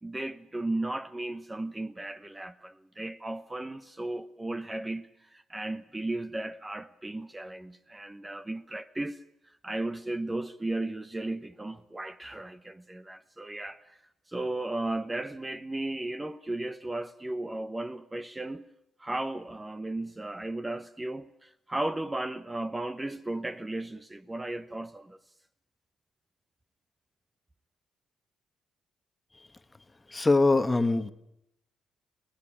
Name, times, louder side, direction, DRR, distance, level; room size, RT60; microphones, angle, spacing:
voice 1, 0.0-9.2 9.6-14.0 14.3-18.7 19.0-25.2, right 2 dB, 15° right, 0.9 m, -35 dB
voice 2, 30.1-31.1, left 3 dB, 20° left, 1.3 m, -23 dB
22.5 x 17.5 x 8.8 m
cardioid pair, 90°, 0 cm